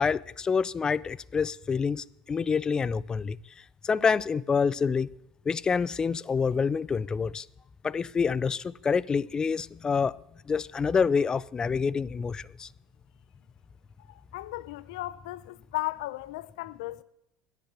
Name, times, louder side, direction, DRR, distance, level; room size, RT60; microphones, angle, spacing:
voice 1, 0.0-3.4 3.8-5.1 5.5-7.5 7.8-10.2 10.5-12.7, left 5 dB, 25° left, 0.4 m, -27 dB
voice 2, 14.1-17.0, left 18 dB, 75° left, 0.6 m, -36 dB
10.5 x 8.3 x 8.4 m
hypercardioid pair, 85°, 3 cm